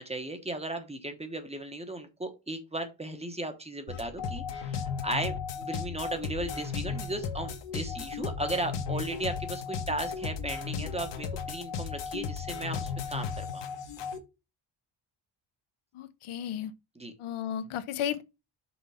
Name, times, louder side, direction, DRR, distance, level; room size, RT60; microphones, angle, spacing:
voice 1, 0.0-13.6 16.9-17.1, right 1 dB, 15° right, 1.1 m, -36 dB
sound 1, 3.9-14.2, left 6 dB, 60° left, 1.3 m, -35 dB
voice 2, 15.9-16.7 17.2-18.2, left 9 dB, 85° left, 0.9 m, -33 dB
6.0 x 4.4 x 5.7 m
wide cardioid pair, 160°, 48 cm